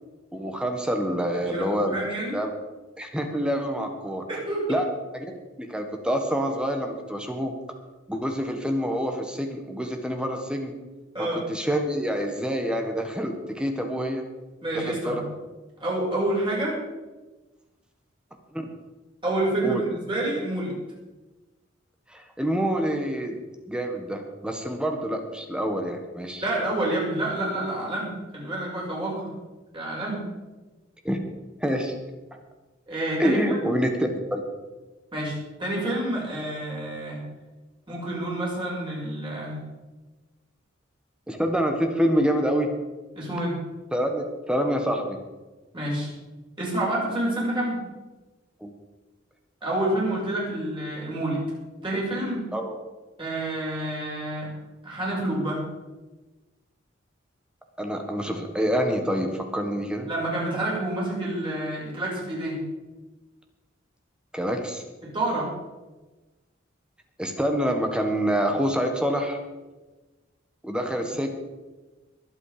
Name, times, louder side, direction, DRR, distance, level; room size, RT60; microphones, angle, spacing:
voice 1, 0.3-2.0 2.3-2.5 3.0-4.3 4.7-4.8 5.1-5.3 5.6-7.5 8.1-10.7 11.2-14.2 14.7-15.2 18.5-18.7 19.6-19.8 22.1-23.4 23.7-26.4 31.0-31.2 31.6-31.9 33.2-34.5 41.3-42.7 43.9-45.2 48.6-48.7 52.5-52.8 57.8-60.1 64.3-64.8 67.2-69.4 70.6-71.3, equal, 5° right, 4 dB, 1.5 m, -26 dB
voice 2, 1.3-2.4 4.3-4.7 11.1-11.4 14.6-15.2 15.8-16.8 19.2-20.8 26.4-29.3 29.7-30.2 32.9-33.7 35.1-37.2 37.9-39.6 43.1-43.6 45.7-46.1 46.6-47.8 49.6-51.4 51.8-52.5 53.2-54.5 54.8-55.6 60.1-62.6 65.0-65.5, right 1 dB, 25° right, -5 dB, 6.5 m, -28 dB
22.0 x 8.6 x 5.1 m, 1.2 s
head